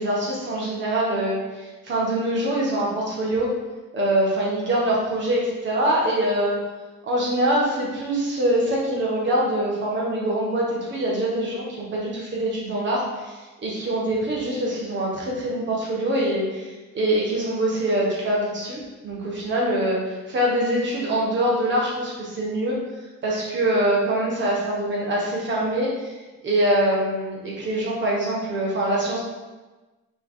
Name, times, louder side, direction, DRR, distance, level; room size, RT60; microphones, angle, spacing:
voice 1, 0.0-3.5 3.9-6.6 7.0-22.8 23.2-26.2 26.4-29.2, right 1 dB, 35° right, -4 dB, 1.6 m, -24 dB
5.6 x 4.3 x 4.1 m, 1.2 s
cardioid pair, 175°, 30 cm